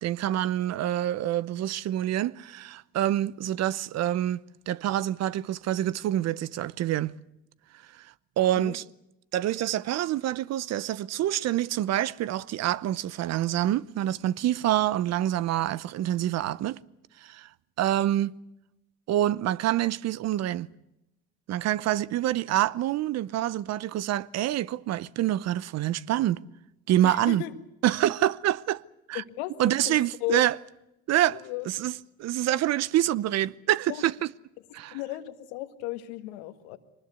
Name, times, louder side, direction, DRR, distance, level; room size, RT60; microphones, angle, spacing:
voice 1, 0.0-7.1 8.0-8.1 8.4-8.8 9.3-16.8 17.2-17.5 17.8-18.3 19.1-20.7 21.5-26.4 26.9-27.4 27.8-28.8 29.1-29.2 29.6-30.6 31.1-34.1 34.7-35.0, right 13 dB, 55° right, 0.8 m, -26 dB
voice 2, 27.0-27.5 29.1-30.5 31.3-31.7 33.9-34.0 34.9-36.8, left 16 dB, 85° left, 1.7 m, -35 dB
23.0 x 20.0 x 8.2 m
hypercardioid pair, 70°, 31 cm